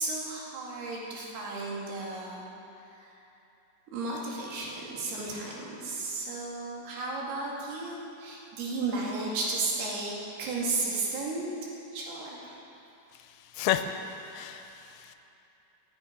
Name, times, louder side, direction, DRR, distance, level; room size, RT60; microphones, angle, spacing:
voice 1, 0.0-2.5 3.0-3.2 3.9-11.5 11.9-12.5, right 3 dB, 90° right, -3 dB, 4.2 m, -34 dB
voice 2, 13.5-13.9 14.3-15.2, left 12 dB, 85° left, 8 dB, 2.5 m, -31 dB
19.0 x 9.7 x 5.2 m, 2.8 s
omnidirectional pair, 4.5 m